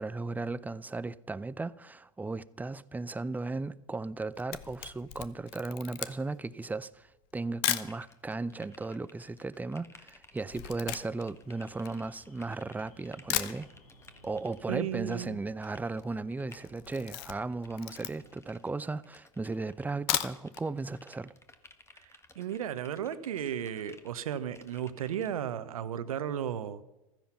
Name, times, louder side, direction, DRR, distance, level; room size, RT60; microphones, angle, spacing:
voice 1, 0.0-13.7 14.2-21.3, right 3 dB, 10° right, 0.5 m, -36 dB
Camera, 4.1-8.0 8.7-8.8 8.9-12.6 13.0-13.1 13.3-14.1 14.4-14.5 14.8-14.9 15.1-15.5 15.8-16.1 16.4-18.5 19.0-19.1 19.9-20.7 21.0-21.1 21.5-21.6, left 14 dB, 55° left, 1.0 m, -36 dB
sound 1, 7.7-14.7 15.1-15.3 15.6-16.6 17.2-18.7 19.0-19.9 20.2-25.3, left 3 dB, 15° left, 1.5 m, -58 dB
Alarm, 11.5-18.4, equal, 90° left, 2.7 m, -59 dB
voice 2, 14.7-15.4 22.4-26.8, right 9 dB, 80° right, 1.0 m, -34 dB
15.0 x 13.5 x 5.8 m
hypercardioid pair, 85°, 18 cm